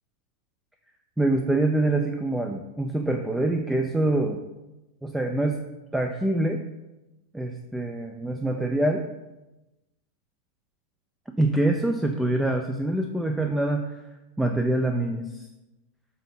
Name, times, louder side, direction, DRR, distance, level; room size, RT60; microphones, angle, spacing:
voice 1, 1.2-4.4 5.0-5.6 5.9-6.6 7.3-9.1 11.4-14.0 14.4-15.5, right 2 dB, 5° right, 4 dB, 0.5 m, -25 dB
6.8 x 2.9 x 5.7 m, 1.0 s
figure-of-eight pair, 90°, 0 cm